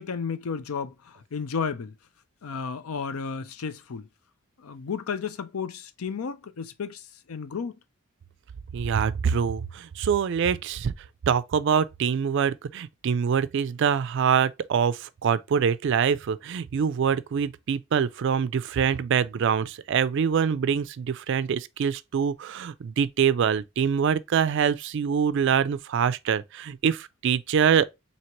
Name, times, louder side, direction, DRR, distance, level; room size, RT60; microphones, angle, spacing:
voice 1, 0.0-1.9 2.4-4.1 4.6-7.8, left 5 dB, 90° left, 0.5 m, -33 dB
voice 2, 8.7-10.9 11.3-27.9, right 7 dB, 60° right, 0.3 m, -24 dB
4.5 x 2.8 x 2.8 m
head